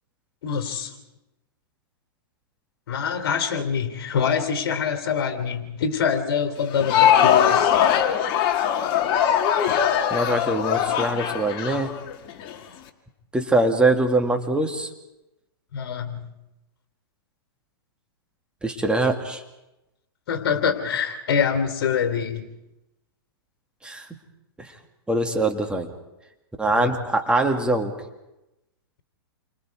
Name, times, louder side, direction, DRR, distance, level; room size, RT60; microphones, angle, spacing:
voice 1, 0.4-0.9 2.9-7.8 15.7-16.3 20.3-22.5 26.7-26.9, left 7 dB, 65° left, 6 dB, 3.2 m, -25 dB
Crowd, 6.6-12.5, left 9 dB, 40° left, 2.0 m, -21 dB
voice 2, 10.1-11.9 13.3-14.9 18.6-19.4 23.8-24.1 25.1-25.9 26.6-27.9, right 2 dB, 5° right, 3 dB, 1.9 m, -23 dB
29.0 x 25.0 x 4.8 m, 0.96 s
hypercardioid pair, 125°, 13 cm